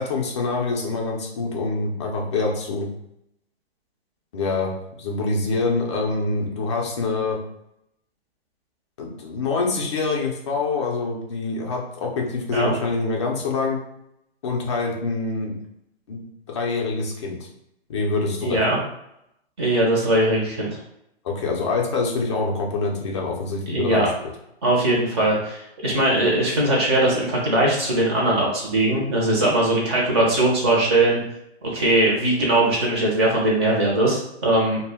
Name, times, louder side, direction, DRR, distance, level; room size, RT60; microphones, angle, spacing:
voice 1, 0.0-2.9 4.3-4.7 5.0-7.4 9.0-13.8 14.4-15.6 16.1-17.4 17.9-18.7 21.2-24.3, left 3 dB, 25° left, -1 dB, 0.4 m, -25 dB
voice 2, 18.4-18.8 19.6-20.8 23.7-24.1 24.6-31.2 31.7-34.8, right 1 dB, 25° right, -3 dB, 0.6 m, -20 dB
2.1 x 2.1 x 3.4 m, 0.80 s
hypercardioid pair, 145°, 33 cm